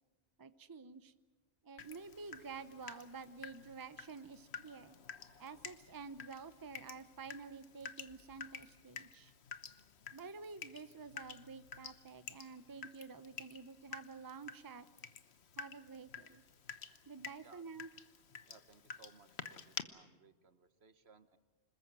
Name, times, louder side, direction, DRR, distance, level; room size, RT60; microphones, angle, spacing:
voice 1, 0.4-1.1 1.6-5.0 5.4-9.3 10.1-14.9 15.6-16.4 17.1-17.9, right 5 dB, 20° right, 12 dB, 0.7 m, -50 dB
Water tap faucet / Drip, 1.8-19.8, left 6 dB, 70° left, 1.3 m, -51 dB
voice 2, 18.4-21.4, right 4 dB, 70° right, 11 dB, 1.5 m, -63 dB
26.5 x 20.5 x 7.6 m, 1.2 s
omnidirectional pair, 1.1 m